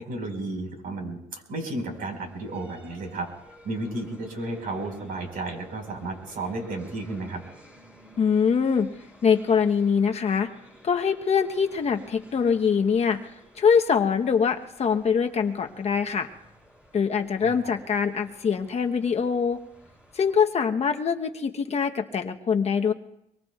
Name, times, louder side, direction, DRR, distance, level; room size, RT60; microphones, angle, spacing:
voice 1, 0.0-3.3 3.6-7.4 17.4-17.7, right 2 dB, 60° right, 3 dB, 4.8 m, -33 dB
sound 1, 1.7-20.4, equal, 5° right, 5.9 m, -54 dB
voice 2, 8.2-8.9 9.2-10.5 10.8-13.3 13.6-16.3 16.9-19.6 20.1-22.9, left 6 dB, 40° left, 5 dB, 1.0 m, -23 dB
25.0 x 23.0 x 2.4 m, 0.79 s
cardioid pair, 110°, 17 cm